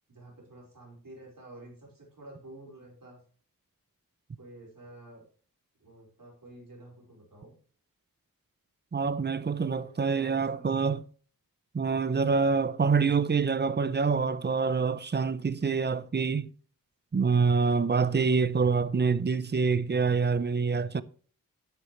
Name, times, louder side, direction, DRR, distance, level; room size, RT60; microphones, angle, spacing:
voice 1, 0.1-3.2 4.4-5.2 5.8-7.5 9.4-10.8, right 1 dB, 70° right, 4.8 m, -50 dB
voice 2, 8.9-11.0 11.7-16.5 17.1-21.0, right 5 dB, 30° right, 0.5 m, -26 dB
10.5 x 8.1 x 3.1 m
wide cardioid pair, 75°, 34 cm